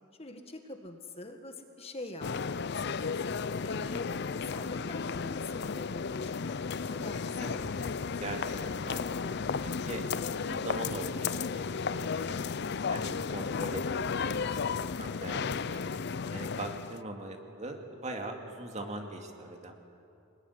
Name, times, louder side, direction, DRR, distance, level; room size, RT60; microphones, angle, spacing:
voice 1, 0.2-3.2 3.6-7.4, left 2 dB, 30° left, 5 dB, 1.7 m, -45 dB
sound 1, 2.2-17.0, left 5 dB, 55° left, 0.5 m, -34 dB
voice 2, 8.0-9.3 9.6-12.5 12.9-15.8 16.3-19.7, right 2 dB, 35° right, 3 dB, 2.6 m, -41 dB
25.5 x 20.5 x 9.8 m, 2.7 s
head